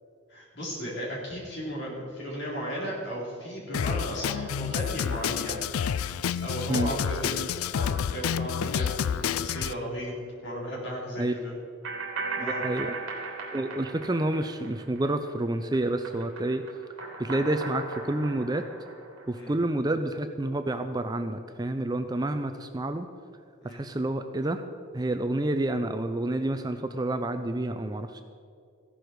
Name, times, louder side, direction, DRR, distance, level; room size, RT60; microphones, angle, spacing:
voice 1, 0.3-5.6 6.4-7.4 7.7-10.1 10.4-11.5 12.4-12.7 19.3-19.5 23.6-23.8, equal, 50° left, -4 dB, 3.9 m, -35 dB
Drum kit, 3.7-9.7, left 8 dB, 85° left, 0.4 m, -29 dB
sound 1, 11.8-15.3 15.6-19.5, right 4 dB, 65° right, 3.1 m, -37 dB
voice 2, 12.4-12.9 13.5-16.6 17.2-18.7 19.3-23.1 23.6-24.6 24.9-28.2, right 1 dB, 20° right, 8 dB, 0.4 m, -29 dB
15.5 x 11.5 x 4.7 m, 2.2 s
head